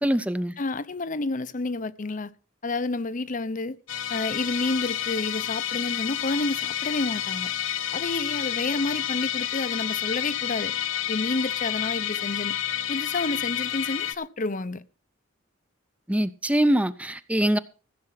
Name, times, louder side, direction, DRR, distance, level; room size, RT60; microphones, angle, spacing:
voice 1, 0.0-0.5 16.1-17.6, right 1 dB, 5° right, 0.5 m, -23 dB
voice 2, 0.6-2.3 2.6-3.8 4.1-7.5 7.9-10.7 11.1-12.6 12.9-14.8, left 3 dB, 40° left, 0.7 m, -29 dB
Musical instrument, 3.9-14.1, left 11 dB, 75° left, 1.1 m, -29 dB
15.5 x 7.7 x 5.7 m
head